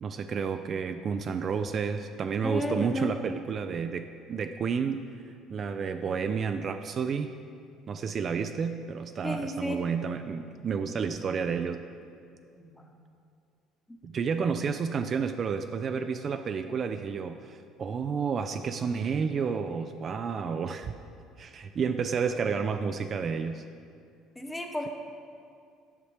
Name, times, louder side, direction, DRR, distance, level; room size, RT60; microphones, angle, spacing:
voice 1, 0.0-5.0 5.5-7.3 7.9-11.9 14.0-20.9 21.4-23.6, right 6 dB, 45° right, 8 dB, 0.3 m, -31 dB
voice 2, 2.4-3.2 9.2-9.8 12.5-12.9 13.9-14.0 24.3-24.9, equal, 10° left, 3 dB, 0.9 m, -33 dB
8.9 x 5.9 x 3.2 m, 2.4 s
hypercardioid pair, 65°, 0 cm